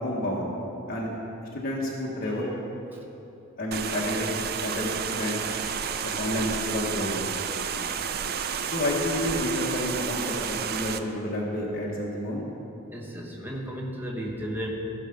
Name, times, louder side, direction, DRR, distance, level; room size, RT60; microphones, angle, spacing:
voice 1, 0.0-0.5 0.9-1.1 1.5-2.5 3.6-4.3 4.6-5.4 6.1-7.3 8.7-12.5, left 1 dB, 45° left, -5 dB, 1.4 m, -29 dB
sound 1, 3.7-11.0, right 7 dB, 50° right, 0.4 m, -31 dB
voice 2, 12.9-14.7, equal, 10° right, -1 dB, 0.9 m, -34 dB
15.0 x 5.7 x 5.2 m, 3.0 s
head